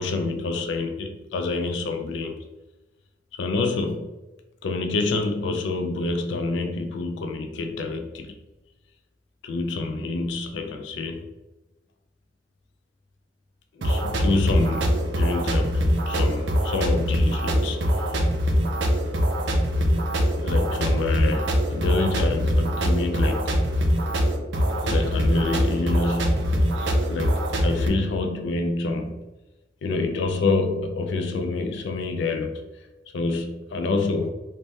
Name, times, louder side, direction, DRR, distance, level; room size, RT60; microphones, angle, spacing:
voice 1, 0.0-2.4 3.3-4.1 4.6-8.4 9.4-11.3 13.8-17.8 20.4-23.5 24.8-26.7 27.1-29.3 29.8-32.6 33.1-34.3, left 3 dB, 80° left, 5 dB, 0.3 m, -27 dB
sound 1, 13.8-27.9, equal, 80° right, 0.4 m, -23 dB
2.6 x 2.1 x 3.2 m, 1.1 s
head